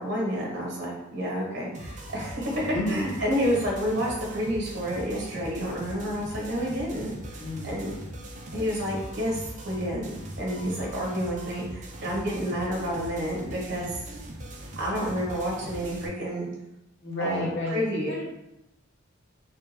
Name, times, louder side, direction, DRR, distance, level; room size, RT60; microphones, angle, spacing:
voice 1, 0.0-7.9 8.5-14.0 14.7-16.5 17.2-18.1, equal, 55° right, -2 dB, 0.9 m, -30 dB
sound 1, 1.7-16.1, right 1 dB, 35° right, 0.4 m, -40 dB
voice 2, 2.7-3.1 7.4-7.8 17.0-18.3, left 1 dB, 60° left, -5 dB, 0.8 m, -31 dB
3.3 x 2.2 x 3.2 m, 0.90 s
head